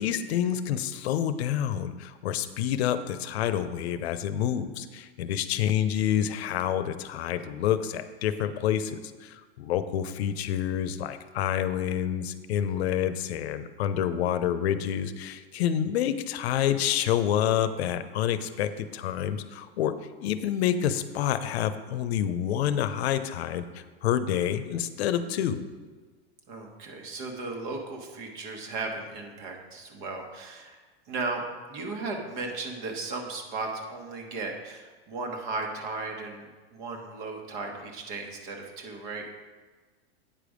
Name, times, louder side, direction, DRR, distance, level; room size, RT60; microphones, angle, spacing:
voice 1, 0.0-19.9 20.2-25.6, left 10 dB, 85° left, 12 dB, 0.7 m, -28 dB
voice 2, 26.5-30.8 31.1-31.4 31.7-39.3, right 3 dB, 50° right, 2 dB, 1.5 m, -36 dB
8.9 x 5.1 x 5.1 m, 1.4 s
supercardioid pair, 160°, 31 cm